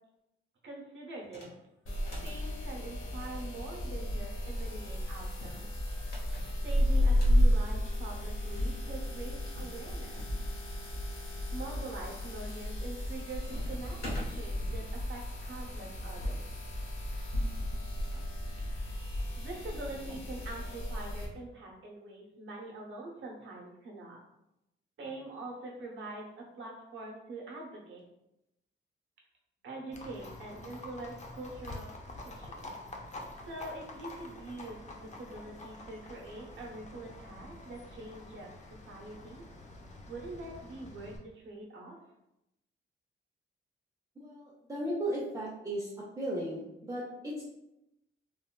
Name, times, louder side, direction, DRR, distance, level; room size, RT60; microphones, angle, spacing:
voice 1, 0.6-1.6 2.2-5.7 6.6-10.2 11.5-16.4 19.4-24.2 25.0-28.0 29.6-32.7 33.5-38.5 38.9-39.4 40.1-42.0, right 2 dB, 70° right, -1 dB, 0.8 m, -44 dB
sound 1, 1.2-1.6 1.9-2.4 3.0-4.4 5.2-7.5 8.6-8.7 8.9-9.0 9.6-10.3 10.9-11.4 12.0-12.3 12.6-13.1 13.4-14.3 15.3-18.2 19.2-20.3, left 1 dB, 55° left, 0.9 m, -50 dB
sound 2, 1.8-21.2, equal, 80° left, 0.8 m, -33 dB
Livestock farm animals working animals, 29.9-41.2, left 2 dB, 35° left, 0.4 m, -47 dB
voice 2, 44.2-45.9 46.2-47.4, right 1 dB, 15° right, -7 dB, 0.5 m, -36 dB
3.3 x 2.2 x 2.2 m, 0.87 s
cardioid pair, 105°, 21 cm